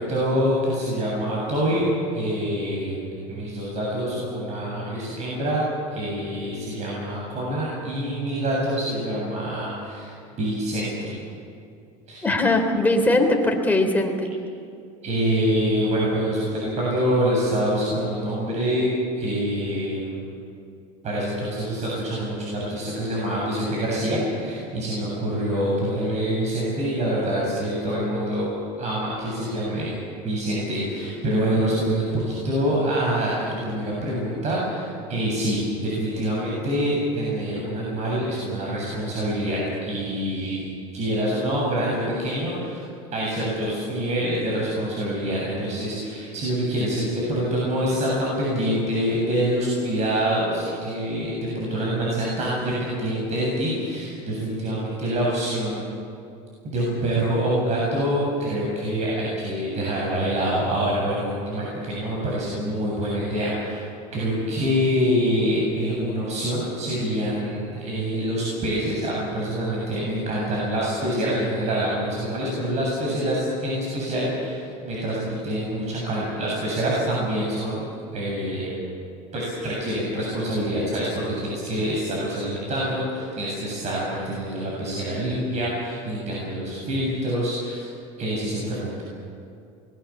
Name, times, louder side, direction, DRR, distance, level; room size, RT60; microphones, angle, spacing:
voice 1, 0.0-1.9 2.1-3.0 3.3-10.1 10.4-11.1 12.1-12.2 15.0-18.9 19.1-20.3 21.0-30.0 30.2-42.8 43.1-55.8 56.6-63.8 64.1-77.8 78.1-78.7 79.3-87.9 88.2-89.0, equal, 40° right, -4 dB, 7.8 m, -26 dB
voice 2, 12.2-14.3, left 2 dB, 10° left, 2 dB, 3.5 m, -20 dB
25.0 x 21.0 x 7.4 m, 2.4 s
supercardioid pair, 125°, 17 cm